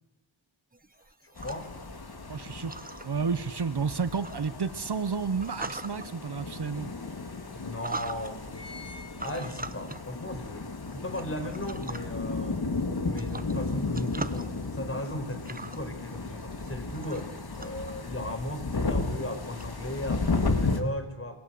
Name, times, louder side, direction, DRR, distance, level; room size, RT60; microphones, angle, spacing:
sound 1, 0.7-19.6, right 2 dB, 20° right, 1.3 m, -44 dB
voice 1, 1.2-1.7 7.5-8.9 9.2-12.8 13.0-21.4, left 1 dB, 30° left, 8 dB, 5.5 m, -37 dB
sound 2, 1.4-20.8, left 3 dB, 50° left, 3.4 m, -34 dB
voice 2, 2.3-2.8 3.0-6.9, right 5 dB, 55° right, 12 dB, 1.3 m, -31 dB
sound 3, 8.5-10.1 10.5-10.6, left 3 dB, 10° left, 5.6 m, -48 dB
28.0 x 23.5 x 8.0 m, 1.0 s
wide cardioid pair, 80°, 47 cm